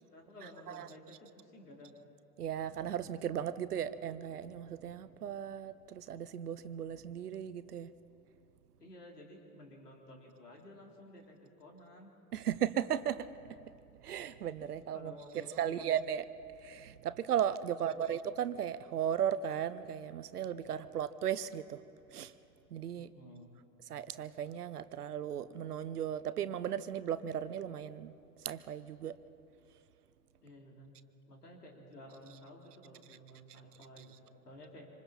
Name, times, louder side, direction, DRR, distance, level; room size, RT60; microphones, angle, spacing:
voice 1, 0.1-2.0 8.8-12.1 14.7-15.9 17.7-18.1 22.9-23.5 30.4-31.0 31.3-34.1 34.4-34.9, left 1 dB, 85° left, 0 dB, 3.5 m, -53 dB
voice 2, 2.4-7.9 12.3-13.3 14.0-16.2 16.6-21.8 22.1-22.3 22.7-23.1 23.9-28.1 28.4-29.1, right 9 dB, 80° right, 15 dB, 0.9 m, -36 dB
26.5 x 26.5 x 4.3 m, 2.7 s
figure-of-eight pair, 75°, 46 cm